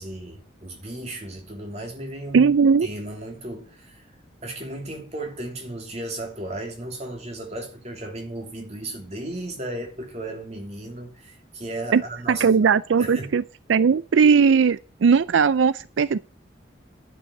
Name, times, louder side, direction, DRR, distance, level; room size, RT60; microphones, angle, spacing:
voice 1, 0.0-2.5 2.8-4.0 4.4-12.5 13.0-13.4, right 1 dB, 35° right, 3.1 m, -35 dB
voice 2, 2.3-2.9 11.9-12.0 12.3-13.4 13.7-16.2, right 6 dB, 90° right, 0.4 m, -18 dB
10.0 x 5.6 x 8.5 m
head